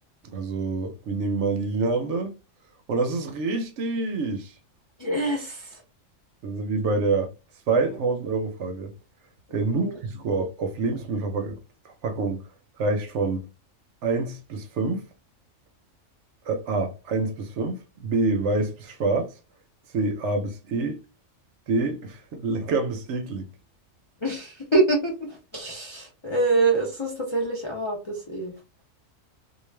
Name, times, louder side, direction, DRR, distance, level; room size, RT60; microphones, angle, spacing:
voice 1, 0.3-2.4 2.9-4.5 6.4-7.3 7.7-8.9 9.5-11.6 12.0-12.4 12.8-13.5 14.0-15.1 16.5-19.3 19.9-21.0 21.7-23.5, right 3 dB, 65° right, 0.8 m, -26 dB
voice 2, 5.0-5.8 6.8-6.9 7.7-8.0 9.6-10.0 24.2-28.5, right 2 dB, 40° left, 0.4 m, -26 dB
2.4 x 2.3 x 3.2 m
omnidirectional pair, 1.4 m